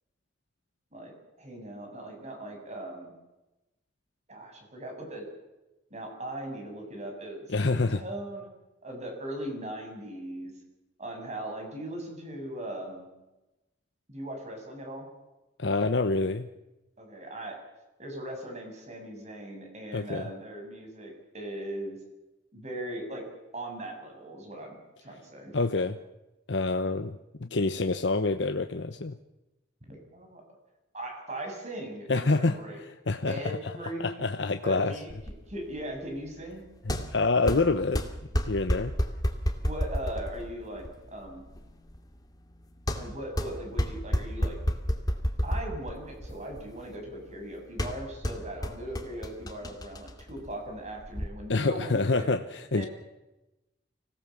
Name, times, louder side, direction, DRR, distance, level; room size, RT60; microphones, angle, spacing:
voice 1, 0.9-3.1 4.3-5.2 5.9-8.5 8.8-10.5 11.0-13.1 14.1-15.1 17.0-17.6 18.0-22.0 22.5-23.2 23.5-25.6 29.9-30.4 30.9-32.8 33.2-34.2 34.6-35.1 35.5-36.6 39.6-41.5 43.0-44.6 45.4-52.4 52.8-52.9, right 1 dB, 40° right, 3 dB, 7.0 m, -39 dB
voice 2, 7.5-8.0 15.6-16.5 19.9-20.3 25.5-26.0 26.5-29.1 32.1-32.6 32.8-33.6 34.0-34.9 36.9-38.0 38.4-38.9 51.5-52.4 52.7-52.9, left 3 dB, 85° left, 8 dB, 1.0 m, -27 dB
sound 1, 35.1-51.3, equal, 20° left, 2.2 m, -32 dB
25.0 x 17.0 x 7.1 m, 1.0 s
head